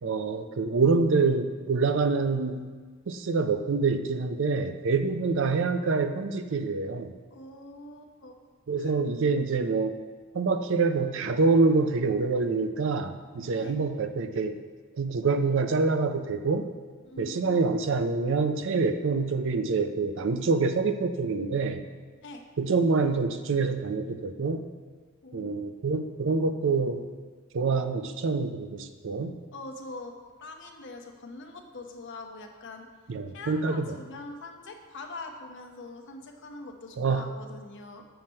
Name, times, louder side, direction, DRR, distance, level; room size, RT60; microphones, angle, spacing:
voice 1, 0.0-2.7 3.1-7.1 8.7-9.9 10.3-14.6 14.9-16.7 17.2-21.9 22.6-24.6 25.3-27.1 27.5-29.4 33.1-34.0 37.0-37.3, right 4 dB, 60° right, 8 dB, 0.5 m, -26 dB
voice 2, 7.3-8.4 8.8-9.0 13.5-13.7 17.0-17.7 22.2-22.5 25.2-25.5 29.5-30.1 30.4-32.9 33.3-38.0, left 2 dB, 60° left, 4 dB, 0.9 m, -43 dB
7.7 x 5.8 x 4.3 m, 1.5 s
head